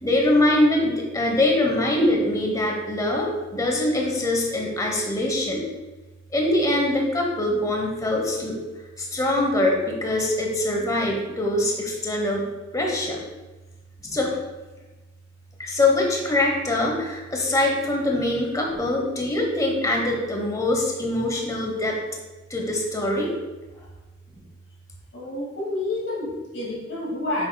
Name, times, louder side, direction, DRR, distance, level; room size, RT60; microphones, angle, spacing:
voice 1, 0.0-5.6 6.3-8.6 9.0-12.4 12.7-13.2 14.0-14.3 15.6-22.0 22.5-23.3, left 1 dB, 20° left, 0 dB, 1.1 m, -23 dB
voice 2, 25.1-27.5, left 2 dB, 85° left, -3 dB, 2.4 m, -29 dB
8.7 x 6.6 x 2.3 m, 1.2 s
head